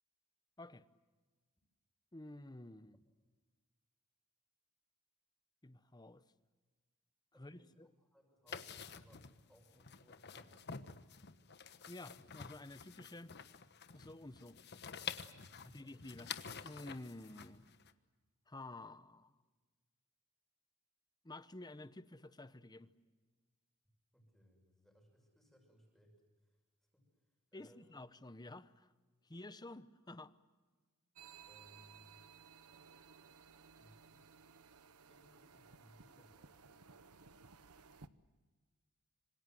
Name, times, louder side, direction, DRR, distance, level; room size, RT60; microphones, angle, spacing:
voice 1, 2.1-3.0 5.6-6.2 7.4-7.9 11.9-13.3 13.9-14.6 15.7-16.3 16.6-17.6 18.5-19.4 21.2-22.9 27.5-28.9 29.2-30.3, left 2 dB, 20° left, 0.9 m, -51 dB
voice 2, 7.3-11.1 15.4-15.9 24.1-26.6 26.9-28.0 31.5-32.2 33.7-34.4 35.1-36.9, equal, ahead, 6.2 m, -67 dB
Paper rusteling, 8.5-17.9, left 6 dB, 50° left, 1.3 m, -49 dB
sound 1, 31.2-38.1, right 6 dB, 85° right, 1.1 m, -59 dB
26.5 x 26.0 x 7.8 m
head